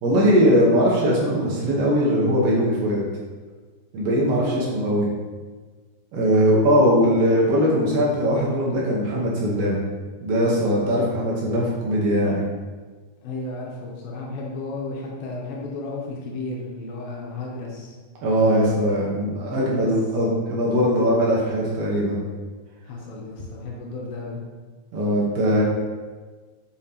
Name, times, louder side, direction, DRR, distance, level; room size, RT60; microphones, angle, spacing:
voice 1, 0.0-3.0 3.9-5.1 6.1-9.8 10.2-12.4 18.2-22.2 24.9-25.6, equal, 70° right, -5 dB, 2.5 m, -20 dB
voice 2, 4.4-4.9 13.2-18.0 19.5-19.9 22.9-24.4, left 2 dB, 75° left, -2 dB, 2.4 m, -33 dB
7.2 x 5.6 x 2.8 m, 1.4 s
omnidirectional pair, 4.7 m